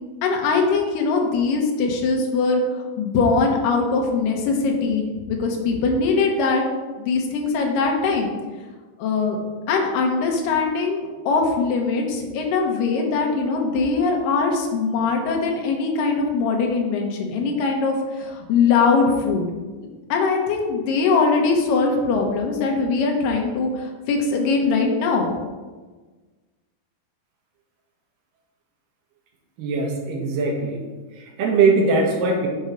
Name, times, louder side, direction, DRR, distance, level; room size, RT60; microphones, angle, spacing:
voice 1, 0.2-2.6 3.0-6.6 7.0-8.3 9.0-9.4 9.7-19.5 20.1-25.4, left 4 dB, 80° left, 1 dB, 2.6 m, -21 dB
voice 2, 29.6-30.8 31.2-32.5, right 3 dB, 75° right, 1 dB, 2.6 m, -21 dB
7.0 x 4.2 x 5.1 m, 1.3 s
omnidirectional pair, 3.9 m